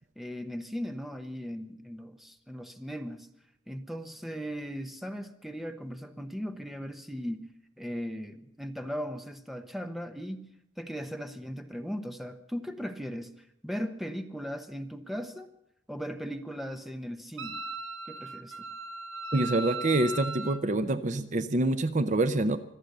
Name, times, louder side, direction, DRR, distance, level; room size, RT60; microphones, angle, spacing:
voice 1, 0.2-3.3 3.7-7.5 7.8-10.5 10.8-15.5 15.9-17.6 18.1-18.6, equal, ahead, 7 dB, 1.0 m, -38 dB
Wind instrument woodwind instrument, 17.4-20.6, right 2 dB, 90° right, 1.3 m, -38 dB
voice 2, 19.3-22.6, right 2 dB, 40° right, 11 dB, 0.6 m, -26 dB
25.0 x 8.8 x 6.7 m, 0.76 s
head